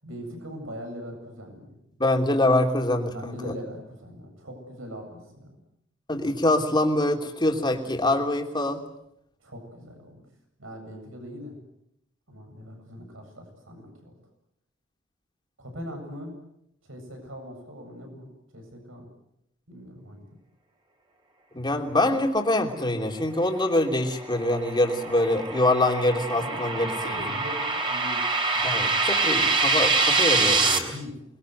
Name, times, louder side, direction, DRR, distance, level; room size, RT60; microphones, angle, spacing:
voice 1, 0.0-1.8 3.1-5.6 9.4-10.3 10.6-11.5 12.3-14.2 15.6-16.3 16.8-19.1 19.7-20.2 26.3-28.8 29.1-29.2 30.8-31.3, equal, 80° right, 4 dB, 7.9 m, -41 dB
voice 2, 2.0-3.5 6.1-8.8 21.5-26.9 28.6-30.9, left 1 dB, 20° left, 3 dB, 3.2 m, -24 dB
sound 1, 24.0-30.8, right 3 dB, 25° right, 3.7 m, -25 dB
28.0 x 21.5 x 8.0 m, 0.79 s
head